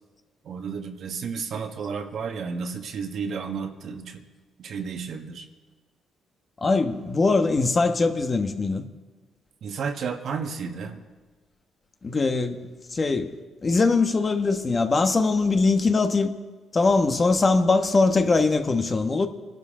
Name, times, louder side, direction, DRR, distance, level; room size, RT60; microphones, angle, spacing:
voice 1, 0.4-4.2 4.6-5.4 9.6-11.0, right 5 dB, 65° right, 1.5 m, -32 dB
voice 2, 6.6-8.8 12.0-12.6 12.9-13.3 13.6-16.3 16.7-19.3, left 3 dB, 35° left, 1.2 m, -21 dB
24.5 x 12.0 x 3.8 m
cardioid pair, 90°, 0 cm